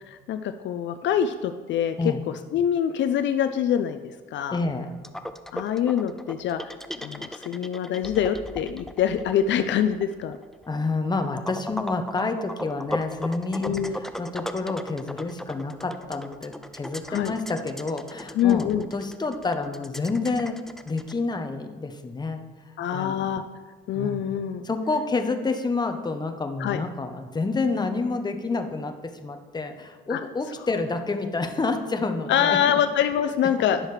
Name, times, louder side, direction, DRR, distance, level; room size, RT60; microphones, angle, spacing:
voice 1, 0.1-1.9 2.5-4.0 4.3-4.6 5.5-6.6 7.0-10.4 13.6-14.0 17.1-17.3 18.3-18.9 22.8-23.4 23.9-24.6 26.6-26.8 30.1-30.2 32.3-33.8, left 9 dB, 65° left, 9 dB, 0.4 m, -24 dB
voice 2, 4.5-4.9 10.7-20.6 20.9-22.4 22.7-23.4 23.9-24.3 24.6-28.9 29.2-32.6, left 3 dB, 20° left, 6 dB, 0.8 m, -29 dB
sound 1, 5.0-21.1, left 1 dB, ahead, 0.4 m, -37 dB
10.0 x 6.3 x 3.2 m, 1.4 s
cardioid pair, 90°, 20 cm